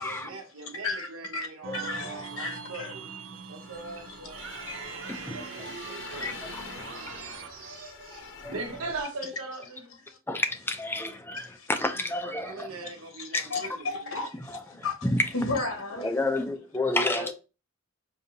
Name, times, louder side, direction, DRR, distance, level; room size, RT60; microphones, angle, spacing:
voice 1, 0.0-3.0 3.5-4.5 5.0-6.3 6.6-10.0 12.2-14.0 16.8-17.3, right 3 dB, 85° right, 1.1 m, -41 dB
voice 2, 0.8-1.5 1.7-2.9 4.7-4.8 6.2-6.4 7.0-7.1 7.6-7.7 8.2-8.3 10.1-10.2 11.4-11.7 12.8-15.1 15.3-16.1, left 3 dB, 80° left, 1.1 m, -34 dB
sound 1, 1.6-7.5, right 5 dB, 60° right, 0.4 m, -42 dB
sound 2, 3.6-9.0, left 5 dB, 60° left, 0.6 m, -45 dB
voice 3, 6.8-7.2 8.4-8.5 10.3-12.7 15.0-15.2 16.0-17.3, left 2 dB, 10° left, 0.4 m, -29 dB
5.2 x 2.7 x 2.7 m
head